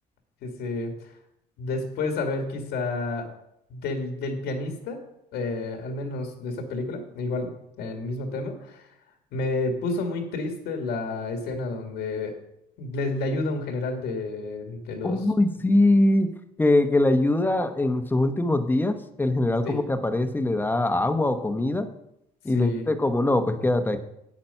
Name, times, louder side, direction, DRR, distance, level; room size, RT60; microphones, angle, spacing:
voice 1, 0.4-0.9 1.6-3.3 3.7-5.0 5.3-8.9 9.3-12.3 12.8-15.2 19.6-19.8 22.5-22.9, left 3 dB, 80° left, 4 dB, 1.9 m, -30 dB
voice 2, 15.0-16.3 16.6-21.9 22.4-24.0, left 2 dB, 10° left, 8 dB, 0.9 m, -22 dB
8.9 x 8.4 x 5.5 m, 0.81 s
cardioid pair, 110°, 17 cm